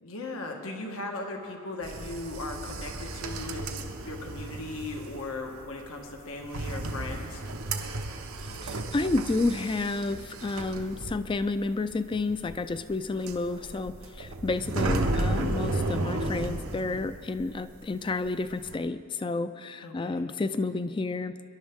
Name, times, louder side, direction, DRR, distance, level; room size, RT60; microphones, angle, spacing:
voice 1, 0.0-7.4 19.8-20.2, left 2 dB, 85° left, 2 dB, 1.4 m, -38 dB
sound 1, 1.8-17.8 18.0-18.8, right 2 dB, 90° right, 1.0 m, -34 dB
voice 2, 8.6-21.4, left 3 dB, 25° left, 12 dB, 0.3 m, -30 dB
23.5 x 11.0 x 3.6 m, 2.4 s
head